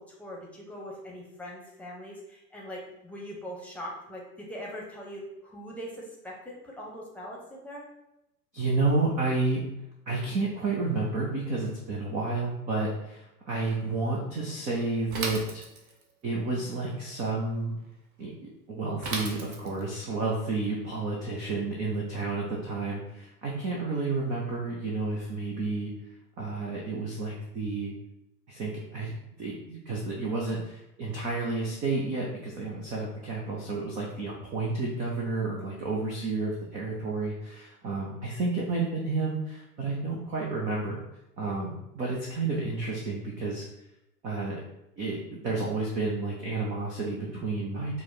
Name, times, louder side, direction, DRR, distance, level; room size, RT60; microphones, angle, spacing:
voice 1, 0.0-7.9, equal, 5° left, -3 dB, 0.9 m, -41 dB
voice 2, 8.5-9.6 10.1-15.6 16.2-17.7 18.2-25.9 26.4-27.9 28.5-41.0 41.4-43.7 44.2-44.6 45.0-48.0, right 3 dB, 15° right, -3 dB, 0.4 m, -31 dB
Bicycle / Mechanisms, 15.1-16.1 19.0-19.9, right 3 dB, 60° right, 0.9 m, -35 dB
4.7 x 2.1 x 4.0 m, 0.87 s
figure-of-eight pair, 90°, 48 cm